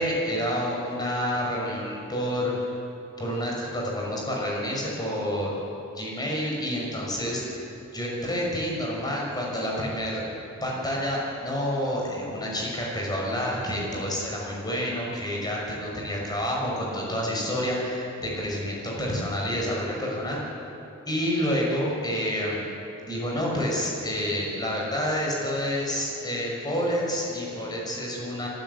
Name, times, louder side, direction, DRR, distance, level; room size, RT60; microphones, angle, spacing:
voice 1, 0.0-2.7 3.2-5.5 5.9-7.6 7.9-10.2 10.6-20.4 21.1-22.7 23.0-28.5, equal, 20° left, -3 dB, 5.9 m, -28 dB
26.5 x 12.5 x 8.3 m, 2.9 s
head